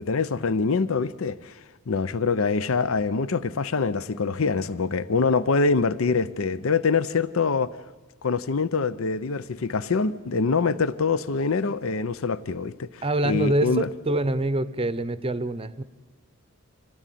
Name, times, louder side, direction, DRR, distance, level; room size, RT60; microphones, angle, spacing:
voice 1, 0.0-1.6 1.9-7.8 8.2-13.9, left 4 dB, 75° left, 0.6 m, -25 dB
voice 2, 13.0-15.8, right 1 dB, 25° right, 0.7 m, -25 dB
25.5 x 16.5 x 9.2 m
head